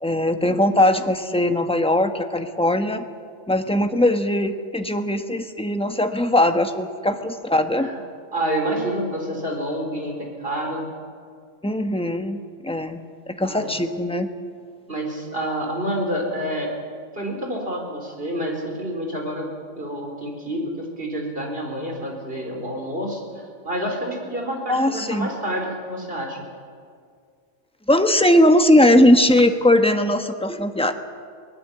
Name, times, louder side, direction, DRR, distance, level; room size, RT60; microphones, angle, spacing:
voice 1, 0.0-3.1 3.5-7.9 11.6-13.0 13.3-14.3 24.7-25.3 27.9-30.9, left 1 dB, 5° left, 6 dB, 1.0 m, -19 dB
voice 2, 8.3-10.8 13.4-13.7 14.9-16.7 17.2-19.5 19.8-26.5, right 1 dB, 45° right, 1 dB, 4.4 m, -28 dB
22.5 x 18.5 x 8.7 m, 2.1 s
omnidirectional pair, 1.4 m